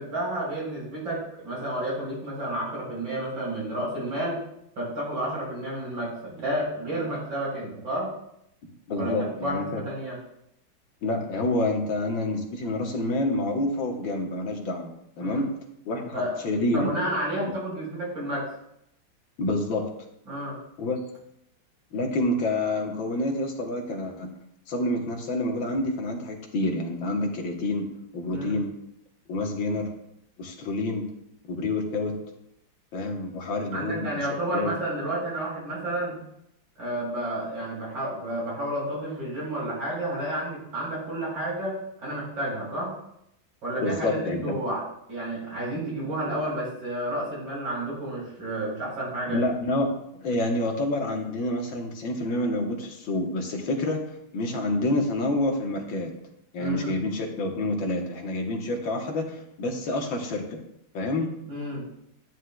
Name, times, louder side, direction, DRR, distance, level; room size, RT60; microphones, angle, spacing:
voice 1, 0.0-4.4 4.8-8.1 9.0-10.2 15.2-15.5 16.1-18.5 20.3-20.6 28.3-28.6 33.7-36.2 36.8-42.9 43.6-44.8 45.1-49.4 56.6-56.9 61.5-61.8, right 1 dB, 70° right, -5 dB, 4.9 m, -31 dB
voice 2, 8.6-9.8 11.0-15.5 15.9-16.9 19.4-19.8 20.8-21.0 21.9-24.3 24.7-28.7 29.3-29.9 30.4-31.1 31.4-32.1 32.9-34.3 34.5-34.7 43.8-44.5 49.3-49.9 50.2-54.0 54.3-56.1 56.5-60.6 60.9-61.3, left 2 dB, 75° left, 2 dB, 2.0 m, -28 dB
11.5 x 9.5 x 2.3 m, 0.77 s
omnidirectional pair, 2.1 m